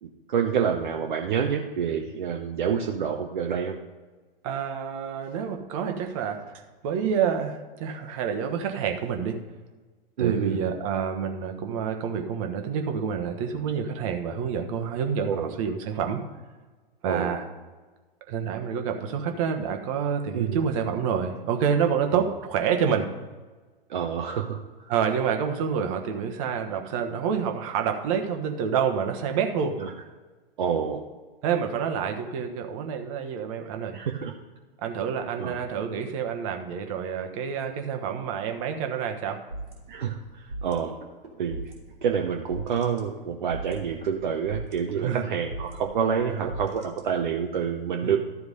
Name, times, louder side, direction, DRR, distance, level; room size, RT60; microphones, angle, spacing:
voice 1, 0.0-3.8 10.2-10.6 15.2-15.6 17.0-17.4 20.3-20.7 22.1-22.2 23.9-24.9 29.8-29.9 30.6-31.0 33.9-34.4 35.4-35.5 39.9-40.9 41.4-41.7 42.0-48.2, right 7 dB, 55° right, 2 dB, 0.9 m, -28 dB
voice 2, 4.4-6.4 6.8-9.4 10.2-16.2 17.0-17.4 18.3-23.1 24.9-29.8 31.4-34.0 34.8-39.4 45.0-45.2 46.3-46.5 48.0-48.2, right 7 dB, 35° right, 5 dB, 1.3 m, -28 dB
sound 1, 39.5-47.5, right 2 dB, 75° right, 2.4 m, -40 dB
13.5 x 4.7 x 5.3 m, 1.3 s
figure-of-eight pair, 110°, 29 cm